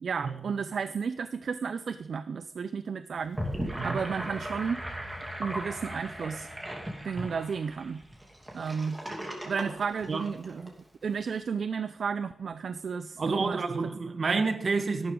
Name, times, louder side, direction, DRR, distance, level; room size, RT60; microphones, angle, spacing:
voice 1, 0.0-4.8 5.4-6.5 7.0-8.0 8.5-9.0 9.5-10.7 11.0-13.6 14.2-14.4, right 6 dB, 65° right, 0.4 m, -33 dB
Gurgling / Sink (filling or washing), 3.2-10.7, equal, 15° right, 2.7 m, -37 dB
voice 2, 13.2-15.1, right 4 dB, 45° right, 1.2 m, -29 dB
13.5 x 12.0 x 3.8 m
wide cardioid pair, 140°, 0 cm